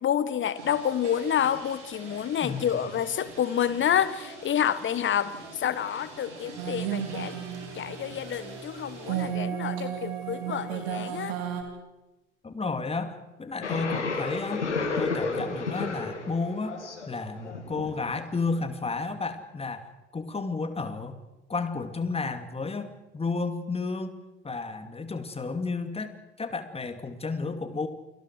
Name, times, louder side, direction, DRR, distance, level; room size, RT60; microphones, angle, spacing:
voice 1, 0.0-7.3 7.7-11.4, left 9 dB, 35° left, 16 dB, 1.5 m, -28 dB
sound 1, 0.5-9.2, right 3 dB, 80° right, 6.5 m, -46 dB
voice 2, 2.4-2.9 12.4-14.6 15.0-16.8 17.1-19.9 20.1-21.2 21.5-27.9, left 4 dB, 15° left, 8 dB, 2.6 m, -32 dB
sound 2, 6.6-11.6, right 9 dB, 60° right, 4.0 m, -33 dB
sound 3, 13.6-18.6, left 4 dB, 80° left, 2.8 m, -32 dB
29.5 x 25.0 x 4.8 m, 1.0 s
figure-of-eight pair, 65°, 35 cm